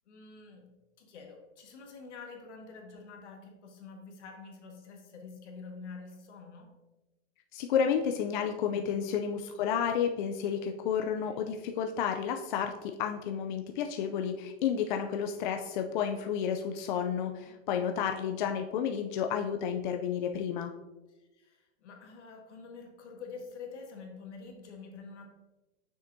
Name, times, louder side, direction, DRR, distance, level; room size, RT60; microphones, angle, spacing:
voice 1, 0.1-6.7 8.7-9.1 11.2-11.5 17.5-17.6 21.1-25.3, left 4 dB, 80° left, 2 dB, 1.7 m, -47 dB
voice 2, 7.5-20.7, left 8 dB, 45° left, 5 dB, 0.4 m, -31 dB
7.0 x 6.3 x 2.7 m, 1.1 s
hypercardioid pair, 150°, 35 cm